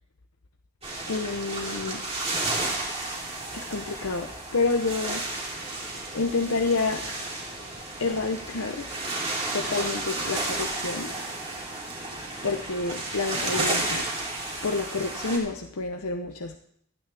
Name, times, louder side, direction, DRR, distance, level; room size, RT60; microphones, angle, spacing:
sound 1, 0.8-15.4, right 2 dB, 30° right, 3.1 m, -32 dB
voice 1, 1.1-2.0 3.5-5.2 6.1-7.0 8.0-8.9 9.5-11.1 12.4-14.1 14.6-16.6, left 3 dB, 80° left, 3 dB, 0.9 m, -28 dB
26.0 x 9.5 x 3.5 m, 0.68 s
head